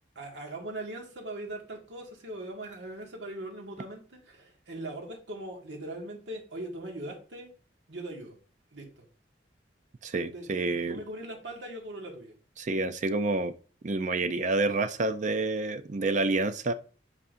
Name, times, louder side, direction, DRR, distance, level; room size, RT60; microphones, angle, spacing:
voice 1, 0.2-7.5 7.9-8.3 8.7-9.1 10.3-12.3, right 1 dB, 75° right, 1.9 m, -40 dB
voice 2, 10.0-11.0 12.6-13.5 13.8-16.7, right 3 dB, 40° right, 0.4 m, -28 dB
8.2 x 5.0 x 2.6 m
head